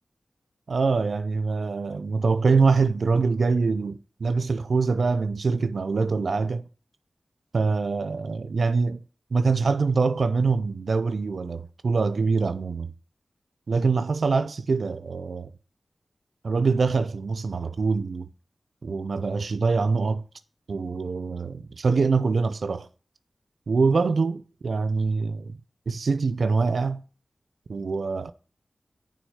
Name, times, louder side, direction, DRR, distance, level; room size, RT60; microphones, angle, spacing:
voice 1, 0.7-6.7 7.5-9.0 9.3-12.9 13.7-15.5 16.4-18.3 18.8-20.2 20.7-22.9 23.7-25.6 25.9-27.0 27.7-28.3, right 4 dB, 80° right, 0.4 m, -24 dB
6.7 x 6.1 x 5.5 m
wide cardioid pair, 60°, 0 cm